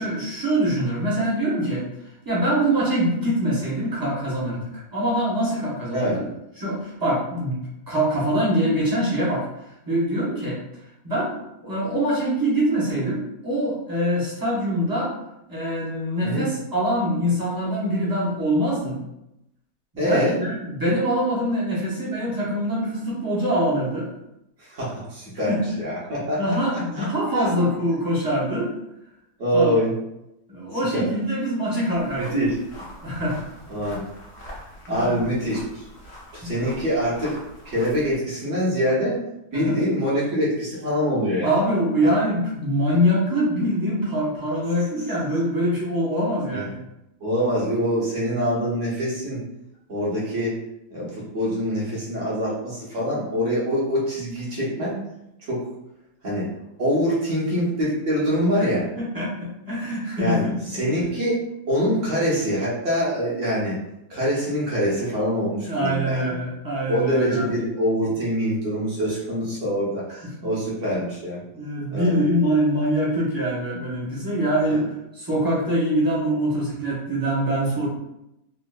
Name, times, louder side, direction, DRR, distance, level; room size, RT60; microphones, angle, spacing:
voice 1, 0.0-1.8 2.2-6.1 6.6-7.6 7.9-9.5 9.9-10.6 11.0-15.1 15.5-19.0 19.9-24.1 25.5-25.6 26.4-28.7 29.5-29.7 30.5-32.3 33.0-33.4 34.4-35.2 36.4-36.7 39.5-39.8 41.4-46.8 59.0-60.6 65.6-67.5 71.5-74.9 75.1-77.9, equal, 20° right, -8 dB, 0.5 m, -24 dB
voice 2, 5.9-6.2 16.2-16.5 20.0-20.4 24.6-27.0 27.3-27.7 29.4-29.9 30.9-31.1 32.3-32.6 33.7-34.0 34.9-35.8 36.3-37.4 37.6-39.2 39.5-41.6 42.0-42.1 46.5-46.7 47.2-49.4 49.9-50.5 50.9-55.0 55.4-55.6 56.2-56.5 56.8-58.9 60.2-61.4 61.7-63.8 64.1-66.3 66.9-71.4 71.9-72.2 74.7-74.8, equal, 50° right, -7 dB, 1.2 m, -24 dB
sound 1, 31.9-38.2, equal, 55° left, 0.8 m, -43 dB
3.6 x 2.4 x 2.2 m, 0.86 s
omnidirectional pair, 1.8 m